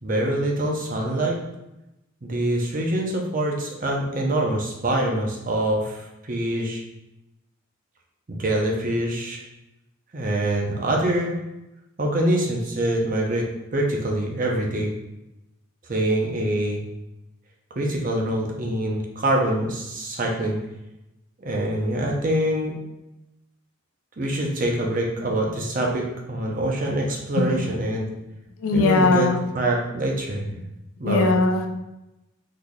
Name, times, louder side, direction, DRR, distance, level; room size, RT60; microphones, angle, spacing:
voice 1, 0.0-1.4 2.2-6.8 8.3-9.4 10.1-11.4 12.0-13.4 13.7-14.9 15.9-16.8 17.8-20.6 21.4-22.7 24.2-28.0 28.7-30.5 31.0-31.4, right 1 dB, 40° right, -1 dB, 0.6 m, -25 dB
voice 2, 28.6-29.4 31.0-31.7, left 3 dB, 85° left, 3 dB, 0.5 m, -19 dB
3.9 x 3.2 x 2.3 m, 0.93 s
head